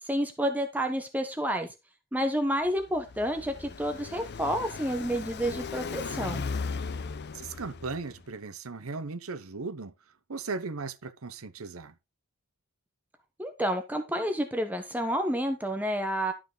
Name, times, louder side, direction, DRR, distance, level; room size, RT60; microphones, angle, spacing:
voice 1, 0.0-1.7 2.1-6.4 13.4-16.3, equal, 10° right, 1.0 m, -29 dB
Car passing by, 2.7-8.2, left 4 dB, 55° left, 0.6 m, -37 dB
voice 2, 7.3-9.9 10.3-11.9, right 4 dB, 85° right, 0.9 m, -37 dB
12.0 x 5.9 x 3.9 m
head